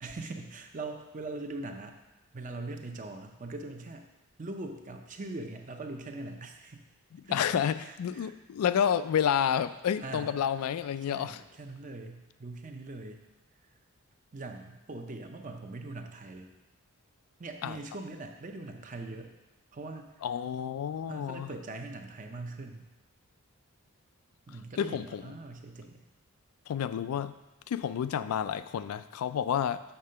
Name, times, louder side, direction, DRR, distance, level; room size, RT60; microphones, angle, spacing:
voice 1, 0.0-2.0 2.3-4.1 4.4-6.8 7.3-8.3 10.0-10.3 11.1-13.2 14.3-16.5 17.4-19.3 19.7-20.1 21.1-22.9 24.5-26.0, right 2 dB, 35° right, 4 dB, 0.6 m, -41 dB
voice 2, 7.3-11.4 17.6-17.8 20.2-21.5 24.8-25.3 26.7-27.3 27.7-29.8, left 8 dB, 85° left, 13 dB, 0.3 m, -30 dB
6.8 x 3.7 x 5.6 m, 1.1 s
head